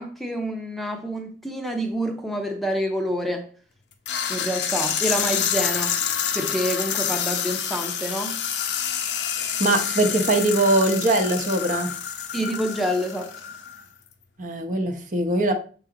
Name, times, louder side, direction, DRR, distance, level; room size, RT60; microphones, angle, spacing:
voice 1, 0.0-3.5 4.3-6.0 6.3-8.4 12.3-13.3, equal, ahead, 0.7 m, -27 dB
sound 1, 4.1-13.8, left 8 dB, 90° left, 0.8 m, -27 dB
voice 2, 9.4-11.9 14.4-15.5, right 2 dB, 45° right, 0.9 m, -22 dB
6.7 x 4.0 x 3.9 m
head